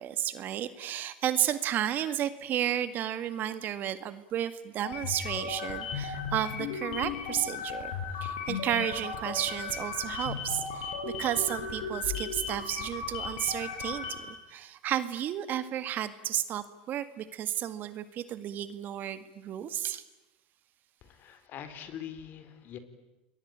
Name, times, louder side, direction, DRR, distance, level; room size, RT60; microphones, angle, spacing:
voice 1, 0.0-7.9 8.2-20.0, right 11 dB, 45° right, 13 dB, 2.0 m, -32 dB
sound 1, 4.8-14.4, left 5 dB, 75° left, 7.4 m, -36 dB
voice 2, 21.0-22.8, left 9 dB, 45° left, 11 dB, 4.2 m, -43 dB
28.5 x 22.0 x 9.0 m, 1.0 s
supercardioid pair, 100°, 4 cm